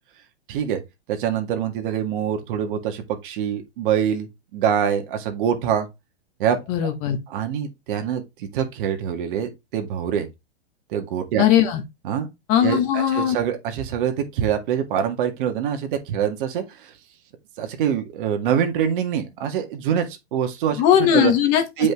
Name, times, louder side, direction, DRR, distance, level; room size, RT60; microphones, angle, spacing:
voice 1, 0.5-0.8 1.1-5.9 6.4-6.6 7.3-10.3 10.9-11.4 12.0-12.3 12.6-16.9 17.6-21.3 21.8-21.9, right 8 dB, 50° right, 1.9 m, -25 dB
voice 2, 6.7-7.2 11.4-11.8 12.5-13.4 20.8-21.6, left 10 dB, 40° left, 1.7 m, -18 dB
7.8 x 5.3 x 3.7 m
hypercardioid pair, 135°, 33 cm